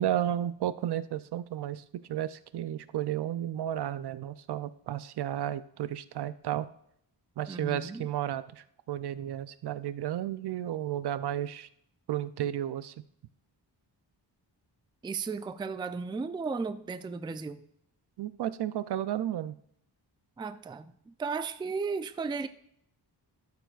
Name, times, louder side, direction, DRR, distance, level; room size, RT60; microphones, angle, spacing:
voice 1, 0.0-6.7 7.4-11.7 12.1-12.9 18.2-19.5, right 11 dB, 65° right, 14 dB, 0.5 m, -33 dB
voice 2, 7.5-8.1 15.0-17.6 20.4-22.5, right 4 dB, 10° right, 11 dB, 0.3 m, -35 dB
13.0 x 7.0 x 2.4 m, 0.70 s
wide cardioid pair, 115°, 42 cm